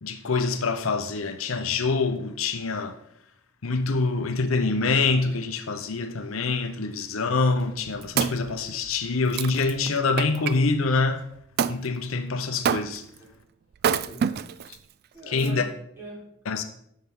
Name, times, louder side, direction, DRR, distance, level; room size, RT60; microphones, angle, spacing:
voice 1, 0.0-3.0 3.6-11.3 11.6-13.0 15.3-15.7 16.5-16.6, left 3 dB, 75° left, 0.7 m, -25 dB
Wood, 7.6-10.6 11.6-11.8 12.6-13.2 13.7-14.7 15.4-15.5, right 7 dB, 50° right, 0.3 m, -28 dB
voice 2, 13.9-14.5 15.1-16.6, right 1 dB, 10° right, 3.9 m, -43 dB
10.0 x 6.6 x 3.6 m
head